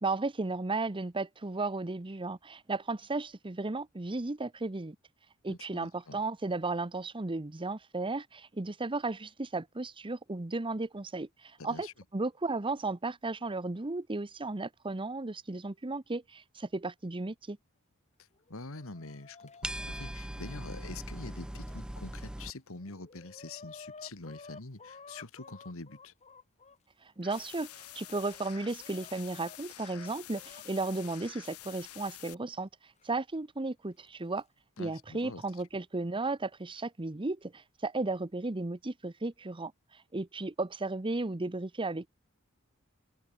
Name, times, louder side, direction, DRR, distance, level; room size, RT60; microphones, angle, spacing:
voice 1, 0.0-5.0 5.4-11.9 12.1-17.6 27.2-32.7 33.0-34.4 34.8-39.7 40.1-42.1, right 3 dB, 25° right, 0.8 m, -34 dB
voice 2, 5.5-6.2 11.6-11.9 18.5-26.1 34.8-35.4, left 3 dB, 65° left, 2.0 m, -45 dB
Chicken rooster, 18.3-21.8 22.4-22.5 22.7-26.8 27.4-30.7 31.9-32.0 33.0-33.1 34.1-34.4, left 4 dB, 30° left, 2.3 m, -53 dB
sound 1, 19.6-22.5, right 1 dB, 5° right, 0.3 m, -40 dB
sound 2, 27.2-32.3, left 13 dB, 90° left, 1.6 m, -49 dB
open air
head